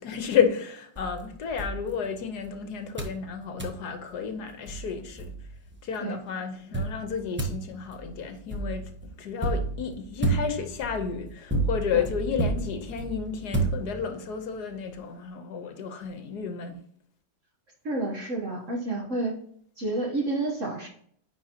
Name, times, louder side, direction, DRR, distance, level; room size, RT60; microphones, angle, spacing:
voice 1, 0.0-5.2 5.8-8.9 9.2-16.8, left 7 dB, 70° left, 1.3 m, -31 dB
sound 1, 0.9-2.5 3.0-3.2 3.6-3.8 4.3-4.4 4.7-5.8 6.7-14.3, right 3 dB, 10° right, 0.9 m, -31 dB
voice 2, 17.8-19.3 19.8-20.9, right 2 dB, 50° right, 1.3 m, -29 dB
9.9 x 4.3 x 2.8 m
omnidirectional pair, 1.9 m